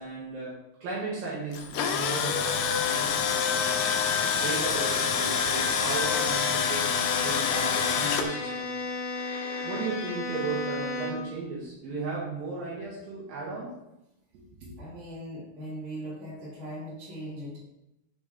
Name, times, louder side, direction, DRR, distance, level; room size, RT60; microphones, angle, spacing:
voice 1, 0.0-4.0 4.4-6.9 7.2-8.7 9.6-13.7 14.3-14.8, right 3 dB, 70° right, -5 dB, 2.5 m, -35 dB
Tools, 1.5-8.2, left 7 dB, 85° left, 2.8 m, -26 dB
Bowed string instrument, 4.9-11.4, left 2 dB, 70° left, 2.1 m, -35 dB
voice 2, 14.8-17.6, equal, 25° right, -8 dB, 1.9 m, -39 dB
7.1 x 3.9 x 3.6 m, 0.91 s
omnidirectional pair, 4.7 m